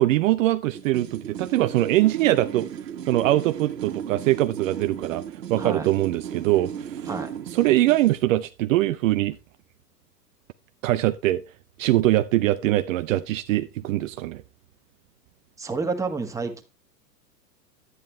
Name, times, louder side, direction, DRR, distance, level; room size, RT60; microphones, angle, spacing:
voice 1, 0.0-2.7 3.1-7.1 7.5-9.4 10.8-11.4 11.8-14.4, right 15 dB, 55° right, 0.6 m, -22 dB
sound 1, 0.7-8.2, right 9 dB, 75° right, 1.5 m, -35 dB
voice 2, 5.6-5.9 7.1-7.3 15.6-16.6, right 4 dB, 5° right, 1.5 m, -29 dB
10.5 x 9.5 x 3.3 m
hypercardioid pair, 110°, 49 cm